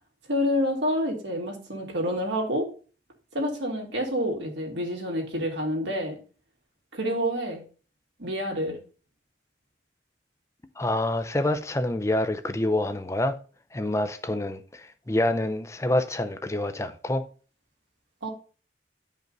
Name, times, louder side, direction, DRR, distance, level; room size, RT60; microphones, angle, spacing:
voice 1, 0.3-2.7 3.3-6.2 6.9-7.6 8.2-8.8 18.2-18.3, equal, 80° right, 2.5 m, -28 dB
voice 2, 10.8-13.4 13.7-17.3, left 1 dB, 15° left, 0.5 m, -27 dB
10.5 x 5.3 x 4.0 m
head